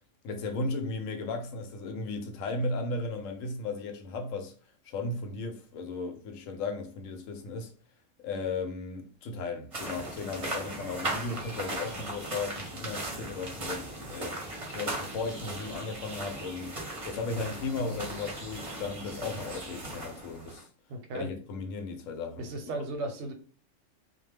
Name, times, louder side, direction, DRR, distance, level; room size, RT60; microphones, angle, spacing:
voice 1, 0.2-4.5 4.8-7.7 8.2-14.4 14.7-16.8 17.0-20.7 21.1-22.5, left 3 dB, 80° left, 1.0 m, -35 dB
sound 1, 9.7-20.6, right 1 dB, 35° right, 0.7 m, -38 dB
voice 2, 20.9-21.3 22.4-23.3, right 2 dB, 70° right, 0.9 m, -35 dB
2.3 x 2.1 x 3.2 m
omnidirectional pair, 1.3 m